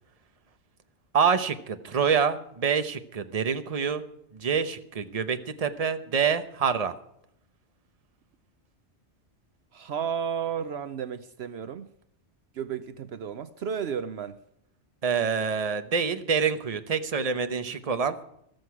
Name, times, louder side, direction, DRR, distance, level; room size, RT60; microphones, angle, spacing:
voice 1, 1.1-4.0 4.4-6.9 15.0-18.1, right 6 dB, 35° right, 1.0 m, -26 dB
voice 2, 9.7-11.9 12.5-14.4, right 7 dB, 65° right, 0.9 m, -33 dB
14.5 x 13.5 x 4.8 m
omnidirectional pair, 1.2 m